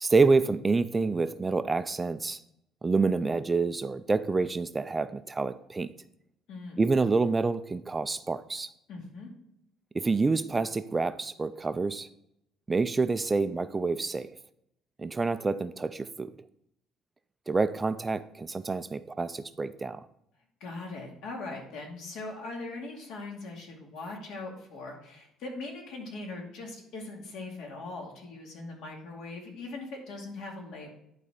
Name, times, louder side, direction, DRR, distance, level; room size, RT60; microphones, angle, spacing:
voice 1, 0.0-2.4 2.8-5.9 6.8-8.7 9.9-12.1 12.7-14.3 15.0-16.3 17.5-20.1, right 3 dB, 15° right, 12 dB, 0.3 m, -27 dB
voice 2, 6.5-6.8 8.9-9.3 20.6-30.9, left 3 dB, 70° left, 1 dB, 2.3 m, -40 dB
11.0 x 4.1 x 5.0 m, 0.77 s
cardioid pair, 150°, 0 cm